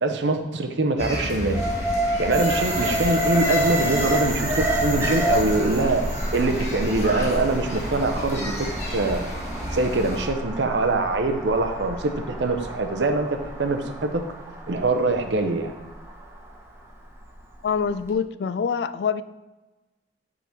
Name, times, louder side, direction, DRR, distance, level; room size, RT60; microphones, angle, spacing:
voice 1, 0.0-1.6 2.2-6.1 6.3-9.3 9.7-14.2 14.7-15.8, right 2 dB, 85° right, 6 dB, 0.7 m, -23 dB
sound 1, 1.0-10.3, equal, 40° left, 1.5 m, -33 dB
Alarm, 1.5-17.6 18.0-18.1, equal, 15° right, 0.9 m, -29 dB
sound 2, 2.3-8.4, right 2 dB, 35° right, 1.8 m, -34 dB
voice 2, 17.6-19.2, left 6 dB, 70° left, 14 dB, 0.3 m, -25 dB
5.8 x 3.9 x 5.7 m, 1.1 s
head